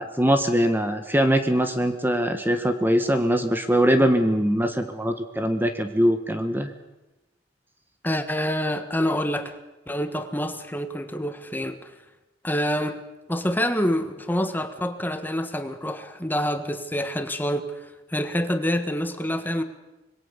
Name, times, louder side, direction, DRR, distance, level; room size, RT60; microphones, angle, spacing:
voice 1, 0.0-6.7, equal, 10° right, 7 dB, 1.4 m, -22 dB
voice 2, 8.0-9.6 9.9-11.9 12.4-13.0 13.3-17.8 18.1-19.6, equal, 10° left, 8 dB, 1.6 m, -27 dB
25.5 x 22.0 x 7.1 m, 1.0 s
head